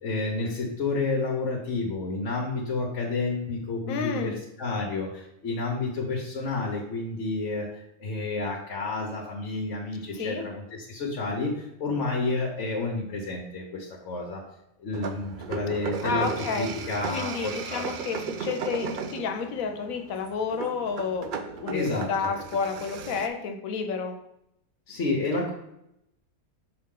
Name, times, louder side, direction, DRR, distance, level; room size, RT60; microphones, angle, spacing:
voice 1, 0.0-14.4 14.8-18.0 21.7-22.1 24.9-25.5, left 3 dB, 60° left, -1 dB, 1.2 m, -30 dB
voice 2, 3.9-4.4 10.2-10.5 16.0-16.7 17.1-24.2, left 5 dB, 80° left, 7 dB, 1.1 m, -30 dB
sound 1, 14.9-23.3, right 6 dB, 75° right, 0.4 m, -36 dB
5.9 x 4.8 x 3.7 m, 0.81 s
omnidirectional pair, 1.4 m